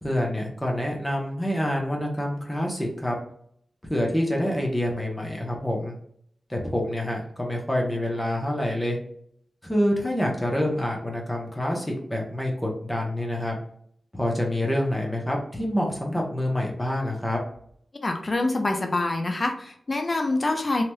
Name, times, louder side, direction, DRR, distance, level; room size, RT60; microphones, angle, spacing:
voice 1, 0.0-3.2 3.9-5.9 6.5-9.0 9.6-13.6 14.1-17.4, left 1 dB, 10° left, 0 dB, 0.8 m, -27 dB
voice 2, 18.0-20.8, left 2 dB, 30° left, 4 dB, 0.4 m, -25 dB
3.2 x 2.8 x 2.2 m, 0.66 s
wide cardioid pair, 145°, 0 cm